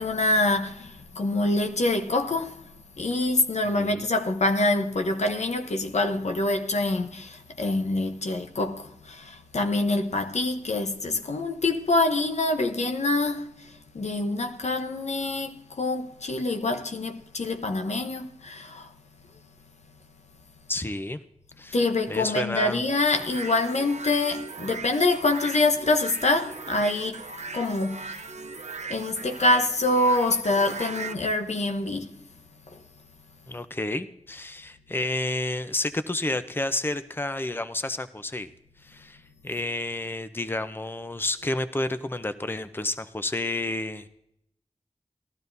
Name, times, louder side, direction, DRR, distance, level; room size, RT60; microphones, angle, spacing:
voice 1, 0.0-2.6 3.0-13.5 13.9-18.9 21.7-27.2 27.5-28.2 28.9-32.1, left 2 dB, 75° left, 0.9 m, -25 dB
voice 2, 20.7-21.2 21.6-21.8 22.1-22.8 33.5-38.5 38.8-44.1, left 2 dB, 20° left, 0.6 m, -30 dB
Wavy Guitar, 23.1-31.1, right 4 dB, 75° right, 0.7 m, -38 dB
18.5 x 12.0 x 2.7 m
cardioid pair, 40°, 12 cm